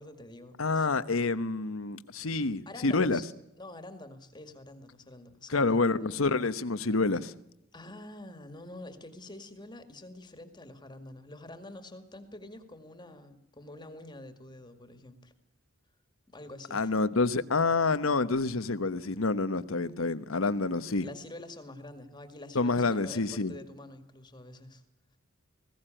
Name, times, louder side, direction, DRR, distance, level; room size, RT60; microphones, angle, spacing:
voice 1, 0.0-0.9 2.7-3.3 3.6-6.1 7.7-15.3 16.3-16.9 18.7-18.8 21.0-24.8, left 1 dB, 20° left, 2.1 m, -47 dB
voice 2, 0.6-3.2 5.5-7.3 16.7-21.1 22.5-23.5, left 3 dB, 85° left, 1.1 m, -28 dB
20.0 x 17.0 x 9.0 m
head